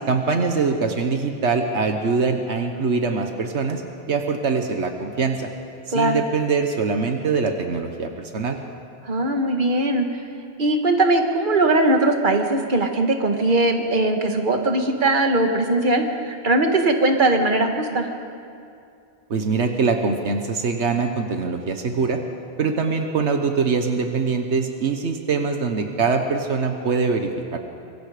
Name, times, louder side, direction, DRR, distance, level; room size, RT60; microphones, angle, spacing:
voice 1, 0.1-3.8 4.1-5.5 5.9-8.6 19.3-22.2 22.6-27.6, right 4 dB, 80° right, 5 dB, 1.5 m, -23 dB
voice 2, 9.0-10.1 10.6-18.1, right 2 dB, 45° right, 4 dB, 1.8 m, -20 dB
25.5 x 23.5 x 5.0 m, 2.5 s
omnidirectional pair, 1.1 m